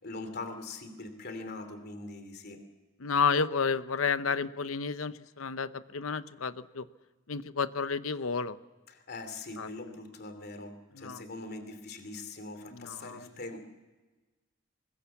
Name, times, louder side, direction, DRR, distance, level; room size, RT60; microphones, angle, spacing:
voice 1, 0.0-2.6 8.9-13.6, left 3 dB, 50° left, 8 dB, 2.9 m, -42 dB
voice 2, 3.0-6.9 7.3-8.6 9.6-9.7 11.0-11.2 12.7-13.2, left 5 dB, 90° left, 13 dB, 0.9 m, -31 dB
24.0 x 21.0 x 7.2 m, 1.2 s
head